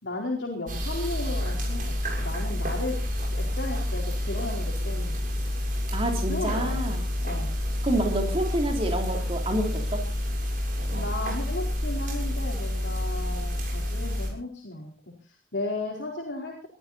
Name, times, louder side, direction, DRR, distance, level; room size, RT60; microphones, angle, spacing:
voice 1, 0.0-2.9 3.3-5.7 6.3-6.9 7.2-7.6 10.9-14.9 15.2-16.7, left 2 dB, 60° left, -2 dB, 4.4 m, -35 dB
sound 1, 0.7-14.3, left 1 dB, 45° right, 7.1 m, -29 dB
voice 2, 5.9-7.1 7.8-10.0, right 1 dB, 30° right, 2 dB, 3.6 m, -28 dB
22.5 x 14.5 x 4.3 m, 0.37 s
head